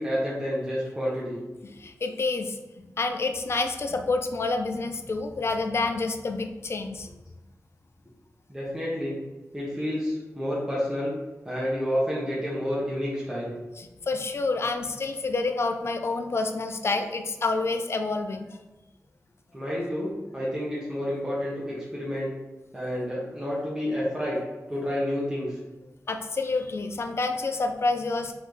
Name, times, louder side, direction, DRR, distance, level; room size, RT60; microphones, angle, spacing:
voice 1, 0.0-1.4 8.5-9.2 9.5-11.1 11.4-13.5 19.5-22.3 22.7-25.6, equal, 10° right, -8 dB, 1.2 m, -29 dB
voice 2, 1.6-7.1 13.8-18.5 26.1-28.3, left 3 dB, 50° left, 6 dB, 0.4 m, -28 dB
4.2 x 3.9 x 3.3 m, 1.1 s
wide cardioid pair, 105°, 6 cm